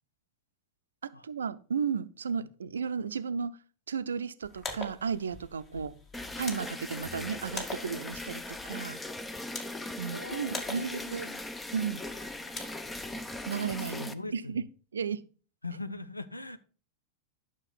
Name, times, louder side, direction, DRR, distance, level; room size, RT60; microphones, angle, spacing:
voice 1, 1.0-3.6 3.9-5.9 6.4-9.0 10.0-11.3 11.7-12.0 13.5-14.6 14.9-15.2, right 6 dB, 70° right, 0.6 m, -34 dB
sound 1, 4.4-13.4, left 3 dB, 25° left, 2.1 m, -44 dB
sound 2, 6.1-14.1, left 2 dB, 10° left, 0.7 m, -39 dB
voice 2, 10.1-11.4 14.0-14.6 15.6-16.6, left 2 dB, 85° left, 0.7 m, -41 dB
11.5 x 6.4 x 4.0 m
figure-of-eight pair, 90°, 0 cm